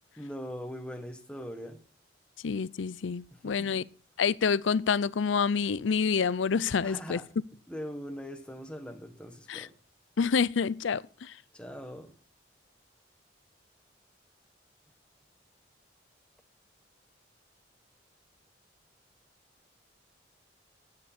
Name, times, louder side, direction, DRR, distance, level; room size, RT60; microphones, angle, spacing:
voice 1, 0.2-1.8 3.3-3.9 6.8-7.3 7.7-9.7 11.5-12.1, equal, 5° left, 1.3 m, -41 dB
voice 2, 2.4-3.8 4.2-7.2 9.5-9.7 10.2-11.3, left 6 dB, 85° left, 0.5 m, -28 dB
14.5 x 9.7 x 4.3 m
head